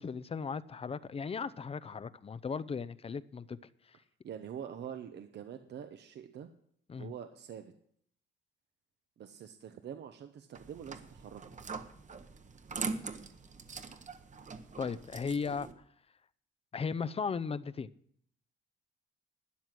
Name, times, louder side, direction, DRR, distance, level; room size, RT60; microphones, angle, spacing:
voice 1, 0.0-3.6 6.9-7.1 14.8-15.7 16.7-17.9, left 5 dB, 30° left, 0.6 m, -36 dB
voice 2, 4.2-6.5 6.9-7.7 9.2-11.4, right 8 dB, 60° right, 0.9 m, -45 dB
sound 1, 10.5-15.7, right 4 dB, 40° right, 1.2 m, -42 dB
12.5 x 9.2 x 6.1 m
cardioid pair, 90°, 20 cm